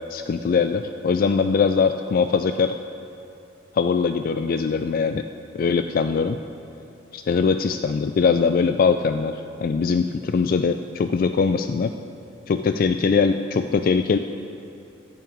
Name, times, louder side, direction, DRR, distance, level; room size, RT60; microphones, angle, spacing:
voice 1, 0.1-2.7 3.7-5.2 5.5-6.4 7.1-9.3 9.6-11.9 12.5-14.2, left 5 dB, 50° left, 8 dB, 0.3 m, -21 dB
11.0 x 5.8 x 8.6 m, 2.7 s
head